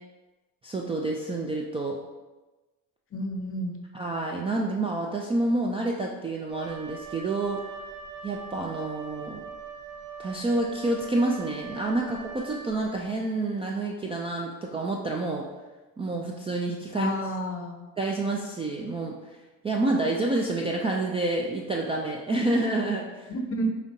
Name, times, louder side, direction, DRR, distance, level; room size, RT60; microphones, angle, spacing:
voice 1, 0.6-2.0 3.9-7.6 8.2-9.4 10.2-15.5 16.0-17.1 18.0-19.2 19.6-23.3, right 2 dB, 15° right, -2 dB, 0.3 m, -28 dB
voice 2, 3.1-3.8 16.9-17.9 23.3-23.7, equal, 35° left, 3 dB, 0.7 m, -31 dB
Wind instrument woodwind instrument, 6.5-13.0, right 5 dB, 60° right, 0.9 m, -41 dB
4.9 x 2.9 x 2.7 m, 1.2 s
supercardioid pair, 80°, 40 cm